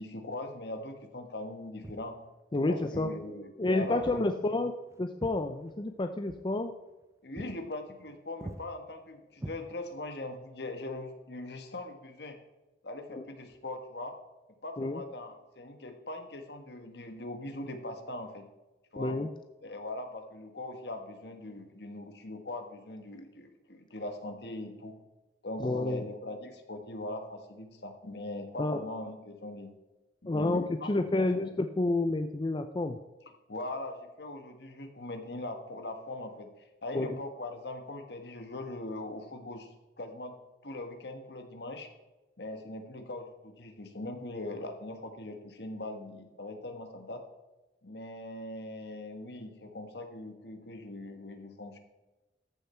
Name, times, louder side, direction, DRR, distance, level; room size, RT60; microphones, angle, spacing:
voice 1, 0.0-2.2 2.6-4.3 7.2-12.4 12.8-14.2 14.6-18.4 18.9-19.2 19.6-24.9 25.4-29.7 30.2-31.5 33.5-40.4 40.6-41.9 42.4-47.2 47.8-51.8, left 2 dB, 65° left, 6 dB, 1.4 m, -41 dB
Walk footsteps, 1.8-2.1 2.9-3.1 4.0-4.2 4.6-6.0 6.3-6.5 6.9-7.0 7.4-7.6 7.9-8.1 8.4-8.6 9.4-10.1, right 1 dB, 15° right, 0.6 m, -43 dB
voice 2, 2.5-3.1 3.6-6.7 13.1-13.2 14.8-15.0 19.0-19.3 25.6-26.0 28.6-28.8 30.3-33.0 36.9-37.2, left 2 dB, 25° left, 8 dB, 0.5 m, -30 dB
14.0 x 7.0 x 4.3 m, 1.1 s
head